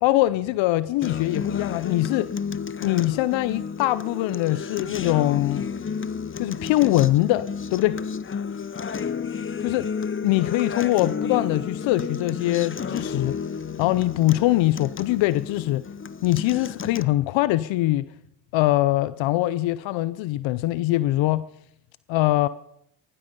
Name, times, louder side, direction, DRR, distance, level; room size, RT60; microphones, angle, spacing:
voice 1, 0.0-2.3 2.8-5.7 6.4-8.0 9.6-9.9 10.2-13.4 13.8-15.8 16.2-18.1 18.5-21.4 22.1-22.5, left 16 dB, 80° left, 0.6 m, -22 dB
Acoustic guitar, 1.0-17.0, left 6 dB, 25° left, 0.8 m, -32 dB
18.0 x 14.5 x 5.3 m
supercardioid pair, 65°, 45 cm